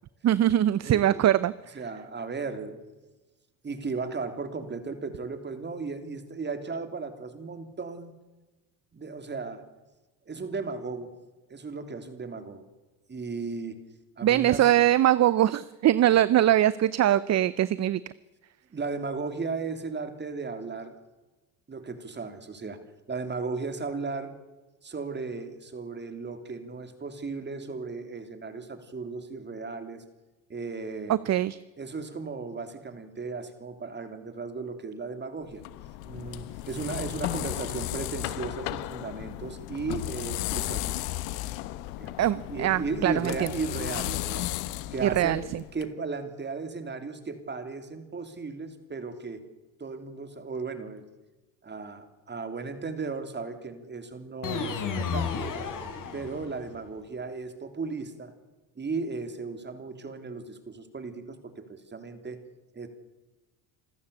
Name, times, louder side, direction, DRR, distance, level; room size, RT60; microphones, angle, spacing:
voice 1, 0.2-1.5 14.2-18.0 31.1-31.6 42.2-43.1 43.4-43.5 45.0-45.4, right 12 dB, 40° right, 18 dB, 0.7 m, -22 dB
voice 2, 0.8-1.2 1.7-3.1 3.6-8.1 8.9-9.6 10.2-11.1 11.5-12.6 13.1-13.8 14.2-14.7 18.7-21.0 21.7-22.8 23.1-24.4 24.8-30.0 30.5-31.2 31.8-35.6 36.0-40.9 42.0-42.2 42.5-44.5 44.9-45.4 45.7-49.5 49.8-51.1 51.6-55.3 56.1-58.3 58.7-62.4 62.7-62.9, right 4 dB, 25° right, 8 dB, 3.2 m, -35 dB
sound 1, 35.5-45.8, left 15 dB, 85° left, 1.2 m, -34 dB
sound 2, 54.4-56.7, left 6 dB, 50° left, 4.2 m, -32 dB
27.0 x 14.0 x 8.4 m, 1.1 s
supercardioid pair, 95°, 40 cm